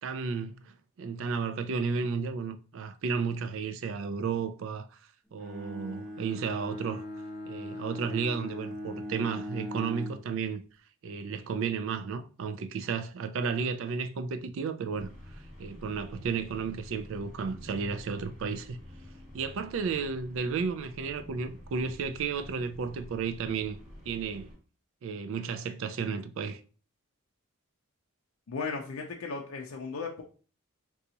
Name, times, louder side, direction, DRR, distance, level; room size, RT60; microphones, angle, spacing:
voice 1, 0.0-5.0 5.3-7.0 7.5-10.6 11.0-15.1 15.6-18.8 19.3-23.8 24.1-24.5 25.0-26.6, right 5 dB, 60° right, 0.3 m, -33 dB
Bowed string instrument, 5.4-10.3, left 1 dB, ahead, 0.8 m, -39 dB
sound 1, 14.9-24.5, left 1 dB, 30° right, 1.2 m, -49 dB
voice 2, 28.5-30.2, left 4 dB, 70° left, 0.5 m, -36 dB
3.9 x 2.3 x 2.8 m
head